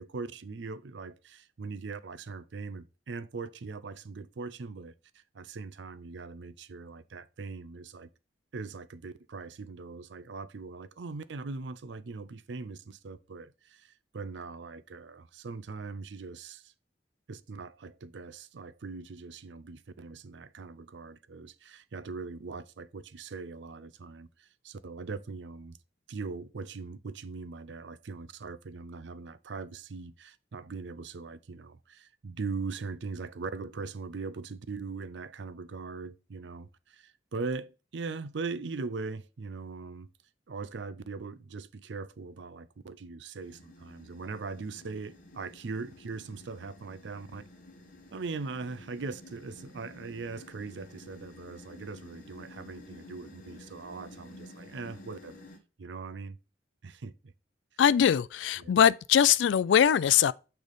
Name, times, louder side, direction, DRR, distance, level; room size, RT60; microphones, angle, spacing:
voice 1, 0.0-8.1 8.5-16.7 17.3-25.8 26.1-40.1 40.5-47.4 48.1-55.3 55.8-56.4 56.8-57.3 58.6-58.7, right 4 dB, 75° right, 0.5 m, -40 dB
sound 1, 43.4-55.6, left 2 dB, 45° left, 1.3 m, -52 dB
voice 2, 57.8-60.3, left 9 dB, 80° left, 0.3 m, -22 dB
6.5 x 3.4 x 5.4 m
head